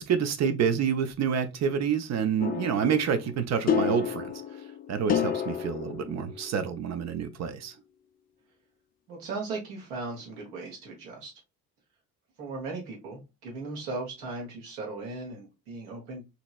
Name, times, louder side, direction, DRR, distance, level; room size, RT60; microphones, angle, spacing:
voice 1, 0.0-4.3 4.9-7.7, right 7 dB, 35° right, 0.5 m, -28 dB
sound 1, 2.4-6.9, left 8 dB, 20° left, 0.3 m, -31 dB
voice 2, 9.1-11.3 12.4-16.2, right 3 dB, 70° right, 1.4 m, -37 dB
2.9 x 2.8 x 2.4 m
figure-of-eight pair, 45°, 47 cm